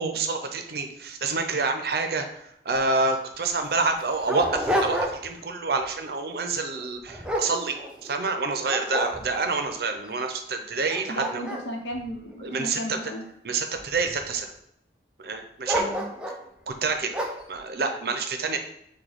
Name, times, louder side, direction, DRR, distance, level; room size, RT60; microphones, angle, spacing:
voice 1, 0.0-2.3 2.6-7.8 8.0-11.4 12.4-13.0 13.4-14.5 15.2-15.9 16.7-17.1 17.5-18.6, right 4 dB, 60° right, 6 dB, 0.5 m, -27 dB
Dog, 2.8-2.9 3.1-3.2 3.8-5.4 5.8-6.2 6.7-8.2 8.7-9.6 10.2-10.3 10.7-13.1 13.7-14.4 15.6-16.5 17.1-17.5, equal, 5° right, 0.4 m, -30 dB
voice 2, 11.1-13.2 15.7-16.1, equal, 90° left, 2 dB, 0.8 m, -34 dB
6.1 x 2.2 x 3.4 m, 0.76 s
head